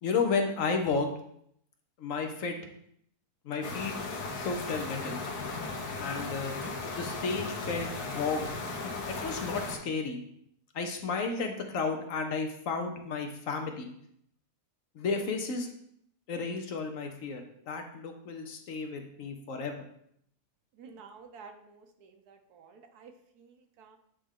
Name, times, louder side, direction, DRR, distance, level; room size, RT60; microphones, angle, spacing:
voice 1, 0.0-1.1 2.0-2.6 3.4-3.9 4.3-5.2 6.0-6.5 6.9-8.5 9.1-10.2 10.7-13.9 14.9-15.7 16.3-19.9, left 4 dB, 65° left, 5 dB, 1.1 m, -32 dB
sound 1, 3.6-9.8, left 3 dB, 85° left, 1.4 m, -36 dB
voice 2, 20.7-24.0, right 5 dB, 85° right, 6 dB, 1.3 m, -52 dB
8.6 x 3.4 x 3.6 m, 0.71 s
omnidirectional pair, 1.6 m